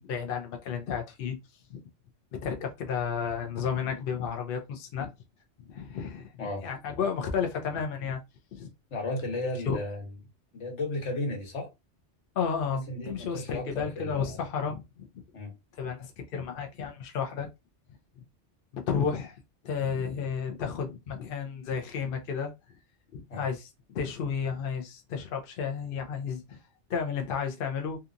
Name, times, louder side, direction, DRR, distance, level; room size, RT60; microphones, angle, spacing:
voice 1, 0.0-1.4 1.7-1.8 2.3-5.1 5.7-6.3 6.6-8.2 8.5-8.7 9.7-9.8 12.4-15.0 15.8-17.5 18.9-19.4 19.6-22.5 23.1-26.6 26.9-28.0, left 6 dB, 60° left, 0.7 m, -32 dB
voice 2, 8.9-10.0 10.5-11.7 12.7-14.4 15.3-15.5 23.3-23.5, left 2 dB, 75° left, 1.4 m, -34 dB
2.8 x 2.3 x 2.5 m
omnidirectional pair, 1.2 m